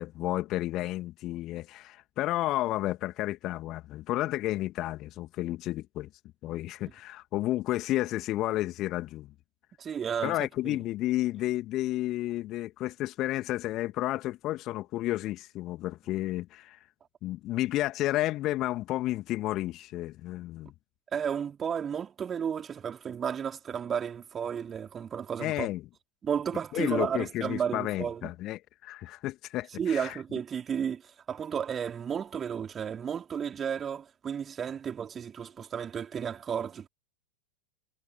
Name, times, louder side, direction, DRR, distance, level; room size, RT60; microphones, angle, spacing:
voice 1, 0.0-6.1 6.4-9.3 10.2-16.8 17.2-20.7 25.4-25.8 26.7-30.2, left 16 dB, 35° left, 2.3 m, -31 dB
voice 2, 9.8-10.4 10.6-10.8 21.1-25.7 26.2-28.3 29.8-36.9, right 7 dB, 20° right, 4.4 m, -33 dB
figure-of-eight pair, 90°, 0 cm